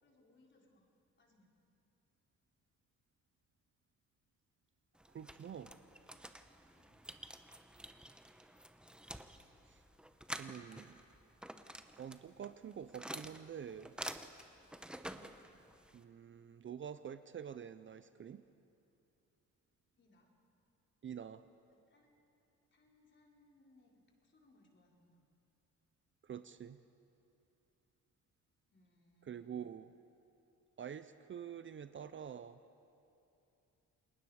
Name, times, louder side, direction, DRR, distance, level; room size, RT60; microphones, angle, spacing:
voice 1, 0.0-0.9 1.2-1.5 5.6-5.9 6.7-7.0 15.1-15.8 20.0-20.4 21.7-22.1 22.7-25.2 28.7-29.7, left 2 dB, 40° left, -1 dB, 4.1 m, -69 dB
sound 1, 5.0-16.0, right 1 dB, 5° right, 0.9 m, -50 dB
voice 2, 5.1-5.7 9.7-9.8 10.4-11.0 12.0-13.9 15.9-18.4 21.0-21.5 26.2-26.8 29.3-29.9 30.8-32.6, right 8 dB, 40° right, 12 dB, 0.6 m, -47 dB
29.0 x 20.0 x 4.9 m, 2.7 s
cardioid pair, 90°, 30 cm